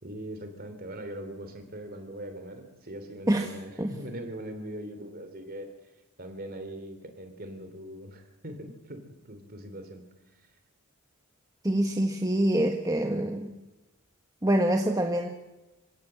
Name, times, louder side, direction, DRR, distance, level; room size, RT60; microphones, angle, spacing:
voice 1, 0.0-5.7 6.2-10.0 10.4-10.5, right 1 dB, 40° right, 7 dB, 3.0 m, -41 dB
voice 2, 3.3-3.9 11.6-13.5 14.4-15.3, right 1 dB, 15° right, 3 dB, 1.2 m, -26 dB
26.5 x 17.0 x 7.6 m, 1.0 s
head